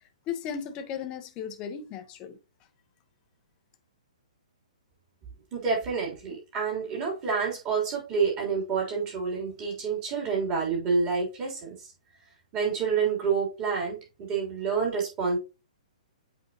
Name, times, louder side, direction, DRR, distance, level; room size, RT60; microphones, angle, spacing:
voice 1, 0.3-2.4, left 7 dB, 20° left, 0.9 m, -36 dB
voice 2, 5.5-11.9 12.5-15.4, right 5 dB, 25° right, 3.4 m, -28 dB
8.1 x 4.6 x 2.9 m
hypercardioid pair, 160°, 4 cm